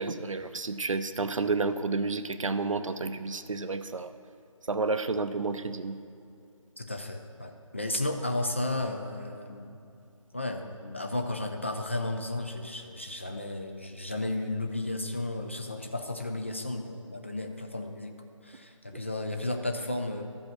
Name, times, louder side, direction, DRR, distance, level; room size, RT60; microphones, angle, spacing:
voice 1, 0.0-4.1 4.6-6.0, right 3 dB, 70° right, 11 dB, 0.6 m, -30 dB
voice 2, 6.8-9.8 10.3-18.1 18.4-20.2, left 2 dB, 20° left, 4 dB, 0.4 m, -33 dB
13.0 x 5.4 x 5.9 m, 2.6 s
figure-of-eight pair, 155°, 17 cm